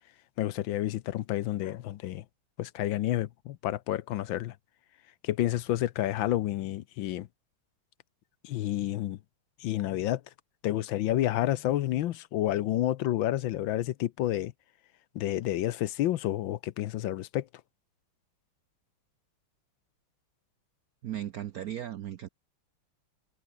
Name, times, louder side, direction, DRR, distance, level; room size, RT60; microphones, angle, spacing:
voice 1, 0.4-2.2 2.6-4.5 5.2-7.3 8.4-9.2 9.6-10.2 10.6-14.5 15.1-17.5, left 13 dB, 70° left, 1.4 m, -29 dB
voice 2, 21.0-22.3, right 11 dB, 70° right, 0.8 m, -36 dB
omnidirectional pair, 2.3 m